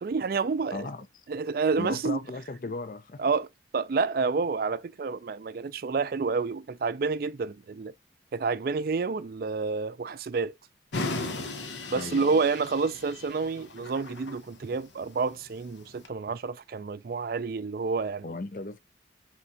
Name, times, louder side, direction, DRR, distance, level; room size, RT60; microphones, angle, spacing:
voice 1, 0.0-0.9 1.3-2.2 3.2-3.5 3.7-7.9 8.3-10.5 11.9-18.4, right 4 dB, 50° right, 0.4 m, -29 dB
voice 2, 0.7-1.1 1.8-3.3 11.9-12.4 18.2-18.8, left 3 dB, 45° left, 0.5 m, -36 dB
sound 1, 10.9-16.1, left 2 dB, 80° left, 0.9 m, -37 dB
4.3 x 3.6 x 2.7 m
head